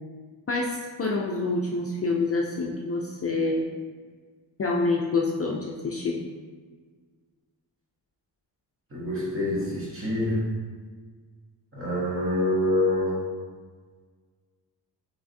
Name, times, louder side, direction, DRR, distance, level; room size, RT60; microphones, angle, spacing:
voice 1, 0.5-3.7 4.6-6.2, left 3 dB, 35° left, -2 dB, 0.4 m, -27 dB
voice 2, 8.9-10.4 11.7-13.3, left 1 dB, 30° right, -6 dB, 1.3 m, -26 dB
5.8 x 3.3 x 2.6 m, 1.5 s
wide cardioid pair, 150°, 42 cm